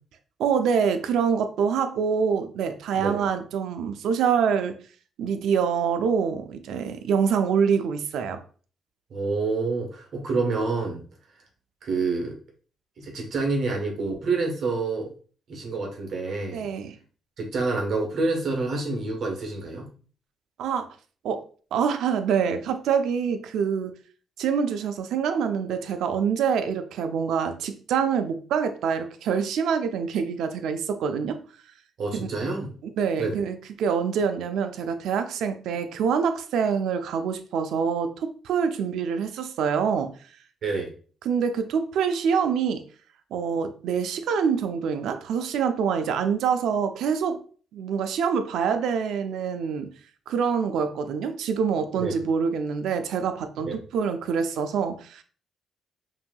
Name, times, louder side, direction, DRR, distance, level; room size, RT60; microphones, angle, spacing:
voice 1, 0.4-4.8 5.2-8.4 16.5-17.0 20.6-20.9 21.2-21.4 21.7-23.9 24.4-31.4 33.0-40.1 41.2-42.8 43.3-47.4 47.7-49.9 50.3-55.2, right 6 dB, 80° right, 0.5 m, -25 dB
voice 2, 9.1-11.0 11.8-12.4 13.0-15.1 15.5-16.7 17.4-19.9 32.0-32.8 33.2-33.4 40.6-40.9 52.0-52.2 53.6-53.8, right 3 dB, 60° right, 1.2 m, -28 dB
5.6 x 2.7 x 2.3 m
cardioid pair, 90°, 0 cm